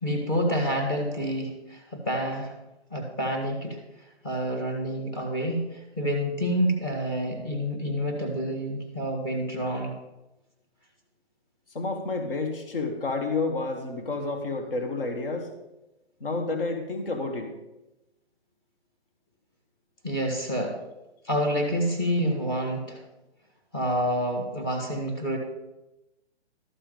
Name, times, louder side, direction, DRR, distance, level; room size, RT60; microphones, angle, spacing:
voice 1, 0.0-2.5 2.9-9.9 20.0-20.8 21.2-23.0 23.7-25.4, equal, 20° left, 2 dB, 1.8 m, -28 dB
voice 2, 11.7-15.5 16.2-17.5, left 3 dB, 55° left, 4 dB, 2.1 m, -30 dB
12.5 x 7.2 x 5.3 m, 0.97 s
hypercardioid pair, 170°, 33 cm